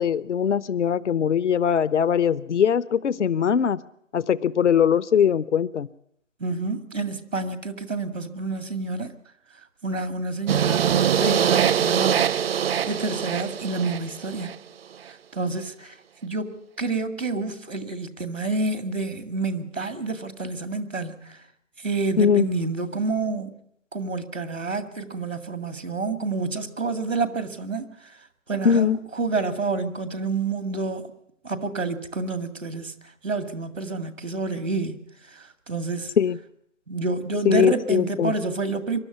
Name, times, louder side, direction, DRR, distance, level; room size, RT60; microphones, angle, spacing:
voice 1, 0.0-3.8 4.1-5.9 22.2-22.5 28.6-29.0 36.2-36.4 37.4-38.3, left 7 dB, 70° left, 19 dB, 0.8 m, -21 dB
voice 2, 6.4-9.1 9.8-12.2 12.8-14.5 15.3-15.9 16.2-21.4 21.8-23.5 23.9-27.9 28.5-31.1 31.4-33.0 33.2-35.0 35.7-36.1 36.9-39.0, right 3 dB, 90° right, 10 dB, 2.3 m, -28 dB
sound 1, 10.5-14.5, right 8 dB, 50° right, 0.7 m, -23 dB
23.5 x 12.0 x 9.5 m, 0.73 s
figure-of-eight pair, 135°, 37 cm